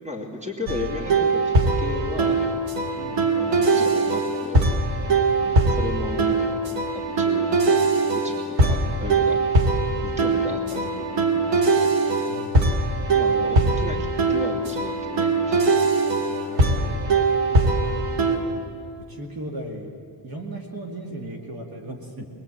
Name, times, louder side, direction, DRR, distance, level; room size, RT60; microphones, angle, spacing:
voice 1, 0.0-2.4 3.1-4.7 5.4-6.4 7.2-7.8 8.1-9.4 10.0-11.9 13.1-15.7, left 2 dB, 15° right, 1 dB, 2.9 m, -35 dB
sound 1, 0.7-18.4, right 3 dB, 80° right, 2.6 m, -22 dB
voice 2, 12.3-12.6 16.3-18.1 19.0-19.9 20.2-22.3, right 1 dB, 55° right, 2 dB, 2.1 m, -37 dB
23.0 x 20.5 x 8.7 m, 2.3 s
wide cardioid pair, 170°, 44 cm